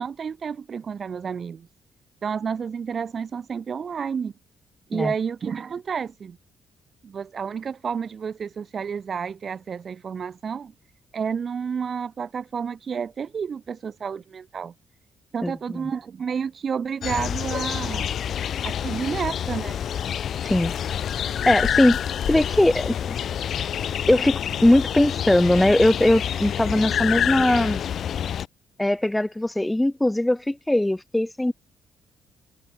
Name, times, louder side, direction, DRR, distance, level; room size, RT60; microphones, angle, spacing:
voice 1, 0.0-1.7 2.2-4.3 4.9-6.4 7.0-10.7 11.1-14.7 15.3-18.1 18.6-19.8, right 6 dB, 45° right, 1.4 m, -30 dB
voice 2, 15.4-15.9 20.4-20.7 21.5-22.0 22.3-23.0 24.1-27.8 28.8-31.5, left 1 dB, 10° left, 2.5 m, -20 dB
sound 1, 17.0-28.5, left 9 dB, 65° left, 0.8 m, -27 dB
cardioid pair, 90°, 0 cm